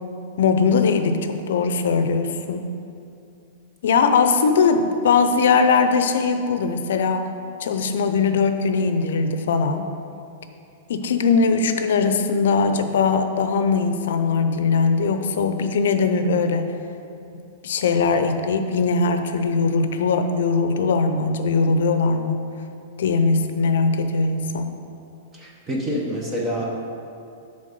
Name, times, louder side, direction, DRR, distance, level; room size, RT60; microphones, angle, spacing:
voice 1, 0.4-2.7 3.8-7.3 7.6-9.9 10.9-16.7 17.6-22.4 23.0-24.7, left 4 dB, 75° left, 8 dB, 0.5 m, -20 dB
voice 2, 25.3-26.8, equal, 15° right, -2 dB, 0.8 m, -27 dB
7.8 x 3.5 x 5.3 m, 2.6 s
supercardioid pair, 160°, 0 cm